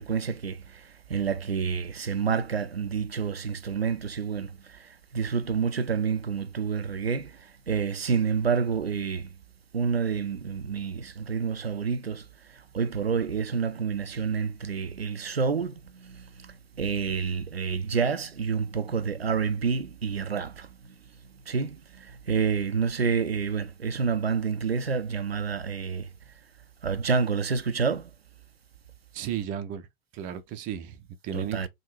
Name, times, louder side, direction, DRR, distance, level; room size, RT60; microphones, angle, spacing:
voice 1, 0.0-9.3 9.7-12.3 12.5-20.7 21.5-26.1 26.8-28.1 31.3-31.7, right 6 dB, 85° right, 0.5 m, -29 dB
voice 2, 29.1-29.9 30.1-31.7, right 9 dB, 30° right, 0.6 m, -34 dB
3.7 x 2.3 x 4.0 m
figure-of-eight pair, 90°, 30 cm